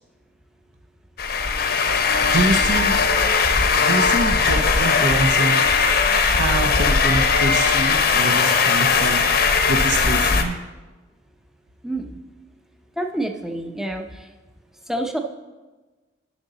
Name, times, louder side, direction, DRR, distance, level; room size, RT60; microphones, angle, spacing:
sound 1, 1.2-10.4, left 5 dB, 55° left, 0.8 m, -19 dB
voice 1, 2.2-3.0 3.8-5.6 6.2-9.2 9.7-10.6, right 2 dB, 65° right, 5 dB, 0.7 m, -25 dB
voice 2, 11.8-12.2 13.0-14.3 14.9-15.2, right 1 dB, ahead, 3 dB, 0.6 m, -28 dB
10.0 x 6.6 x 3.9 m, 1.2 s
head